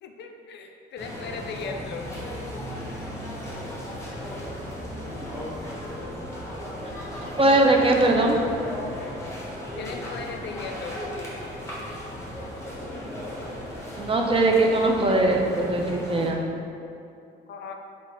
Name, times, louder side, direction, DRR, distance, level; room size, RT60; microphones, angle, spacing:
voice 1, 0.0-2.1 9.8-11.0 17.5-17.7, left 5 dB, 65° left, 4 dB, 0.4 m, -37 dB
sound 1, 1.0-16.3, equal, 15° left, 1.0 m, -36 dB
voice 2, 7.4-8.4 14.0-16.4, right 2 dB, 30° right, 1 dB, 0.5 m, -20 dB
3.9 x 2.5 x 4.2 m, 2.6 s
cardioid pair, 90°, 20 cm